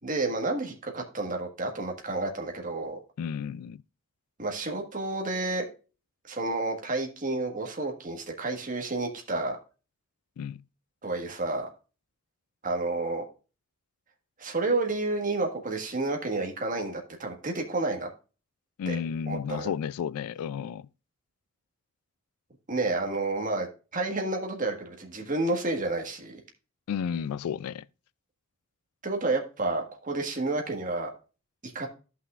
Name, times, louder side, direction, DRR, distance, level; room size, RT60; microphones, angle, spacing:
voice 1, 0.0-3.0 4.4-5.7 6.3-9.6 11.0-11.7 12.6-13.2 14.4-18.1 18.9-19.0 19.3-19.7 22.7-23.7 23.9-26.4 29.0-31.1 31.6-31.9, right 2 dB, 35° right, 1.5 m, -30 dB
voice 2, 3.2-3.8 10.4-10.6 18.8-20.9 26.9-27.9, left 7 dB, 85° left, 0.3 m, -32 dB
14.0 x 5.6 x 2.4 m
head